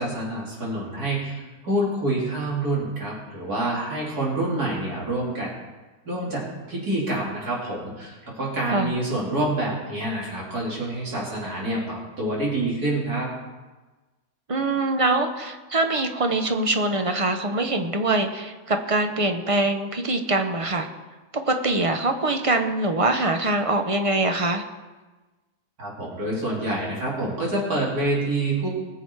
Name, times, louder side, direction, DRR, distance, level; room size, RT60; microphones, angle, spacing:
voice 1, 0.0-5.5 6.1-13.3 25.8-28.7, right 1 dB, 80° right, -4 dB, 3.8 m, -27 dB
voice 2, 14.5-20.9 21.5-24.6, right 2 dB, 30° right, 6 dB, 0.7 m, -23 dB
20.0 x 7.1 x 4.7 m, 1.2 s
omnidirectional pair, 1.6 m